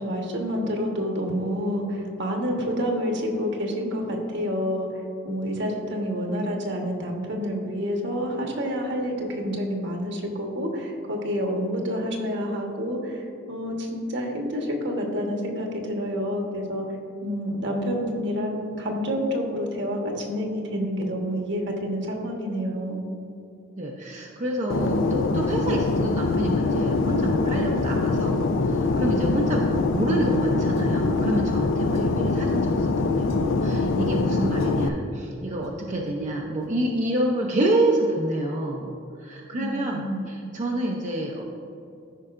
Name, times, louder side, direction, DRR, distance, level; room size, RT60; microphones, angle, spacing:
voice 1, 0.0-4.9 5.2-16.8 17.2-23.0 39.5-40.3, equal, 60° right, 1 dB, 1.2 m, -28 dB
voice 2, 23.8-41.4, right 1 dB, 35° right, -1 dB, 0.6 m, -28 dB
Fixed-wing aircraft airplane, 24.7-34.9, left 3 dB, 65° left, 0.4 m, -23 dB
sound 1, 30.7-31.1 31.9-32.3 33.2-33.5 34.6-34.9 35.6-35.8 36.1-36.2 36.6-36.8, equal, 90° left, 1.7 m, -43 dB
13.5 x 5.4 x 2.5 m, 2.7 s
head